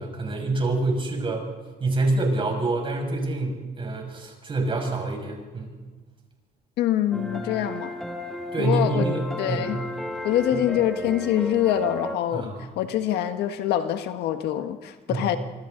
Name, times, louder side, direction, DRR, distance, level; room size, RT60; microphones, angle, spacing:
voice 1, 0.0-1.4 1.8-5.7 8.5-9.7 12.3-12.6 15.1-15.2, right 2 dB, 30° right, 1 dB, 6.3 m, -26 dB
voice 2, 6.8-7.9 8.6-9.1 9.4-9.8 10.2-15.4, left 11 dB, 85° left, 8 dB, 1.5 m, -25 dB
sound 1, 7.1-12.2, left 1 dB, ahead, 2.1 m, -34 dB
26.5 x 25.0 x 4.0 m, 1.4 s
cardioid pair, 110°, 17 cm